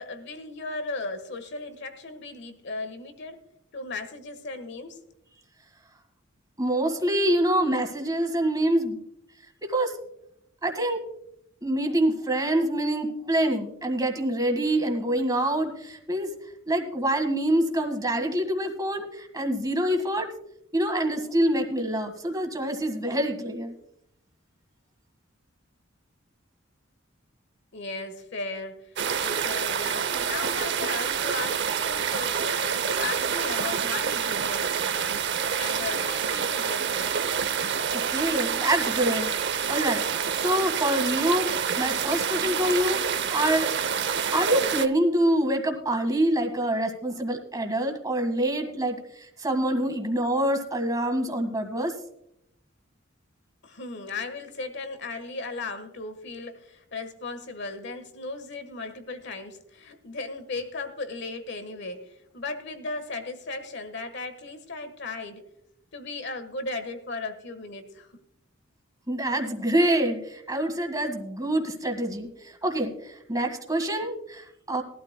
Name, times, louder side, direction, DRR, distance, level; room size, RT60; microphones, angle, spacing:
voice 1, 0.0-3.4 3.7-5.0 27.7-28.9 29.2-35.2 35.6-37.1 53.6-65.4 65.9-68.2, left 3 dB, 60° left, 10 dB, 1.4 m, -36 dB
voice 2, 6.6-9.0 9.6-9.9 10.6-11.0 11.6-16.3 16.7-20.3 20.7-23.7 37.9-39.3 39.7-40.0 40.3-41.5 41.8-43.7 44.3-51.9 69.1-74.8, right 1 dB, 20° right, 4 dB, 1.7 m, -26 dB
sound 1, 29.0-44.9, right 7 dB, 60° right, 0.7 m, -27 dB
20.0 x 12.5 x 2.2 m, 0.80 s
head